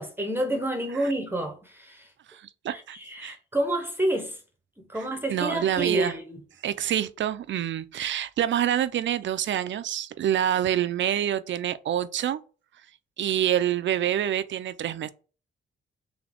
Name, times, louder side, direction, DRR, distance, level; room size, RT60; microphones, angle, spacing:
voice 1, 0.0-2.1 2.7-4.4 4.8-6.4, right 1 dB, 10° right, 0.8 m, -29 dB
voice 2, 2.3-3.4 4.9-5.0 5.3-6.1 6.6-12.4 13.2-15.1, right 10 dB, 60° right, 0.4 m, -27 dB
3.7 x 3.4 x 3.4 m
cardioid pair, 115°, 21 cm